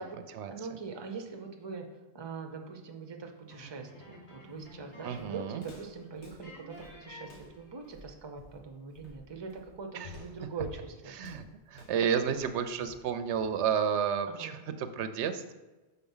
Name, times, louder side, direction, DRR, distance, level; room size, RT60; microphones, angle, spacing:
voice 1, 0.5-1.9 2.1-7.3 7.6-11.1 14.3-14.6, right 5 dB, 30° right, 3 dB, 0.6 m, -42 dB
sound 1, 3.5-5.7 5.9-6.1 6.4-8.0, left 1 dB, 65° left, 2.0 m, -51 dB
Walk footsteps, 4.5-13.8, left 3 dB, 85° left, 1.4 m, -51 dB
voice 2, 5.0-5.6 9.9-10.1 11.1-15.5, right 7 dB, 85° right, 10 dB, 0.9 m, -31 dB
5.8 x 4.0 x 5.4 m, 1.2 s
omnidirectional pair, 1.1 m